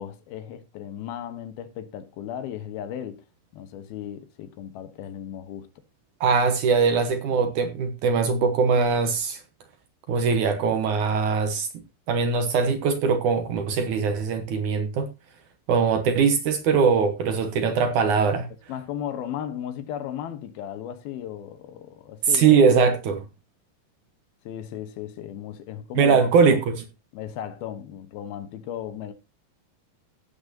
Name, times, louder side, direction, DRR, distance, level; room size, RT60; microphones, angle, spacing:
voice 1, 0.0-3.2 3.5-5.7 18.7-22.9 24.5-26.6 27.1-29.1, left 10 dB, 80° left, 2.9 m, -36 dB
voice 2, 6.2-9.4 10.1-11.7 12.1-15.1 15.7-18.5 22.3-23.2 26.0-26.8, right 5 dB, 65° right, 2.2 m, -21 dB
16.5 x 8.7 x 2.8 m
omnidirectional pair, 4.4 m